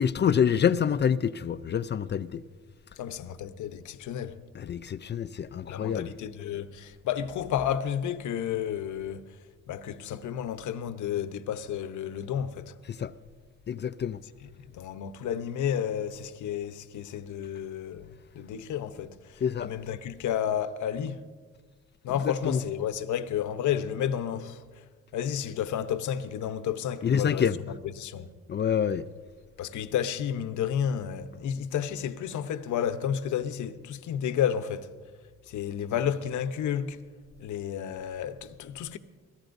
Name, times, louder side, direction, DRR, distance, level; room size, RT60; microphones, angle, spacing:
voice 1, 0.0-2.4 4.6-6.1 13.0-13.1 13.7-14.2 19.4-19.7 22.2-22.6 27.0-27.6 28.5-29.1, left 8 dB, 35° left, 0.5 m, -26 dB
voice 2, 3.0-4.4 5.7-9.3 9.7-12.7 14.7-21.2 22.0-24.6 25.1-28.3 29.6-34.9 35.5-37.0 37.4-39.0, left 9 dB, 75° left, 0.9 m, -31 dB
24.5 x 17.5 x 2.6 m
cardioid pair, 90°, 30 cm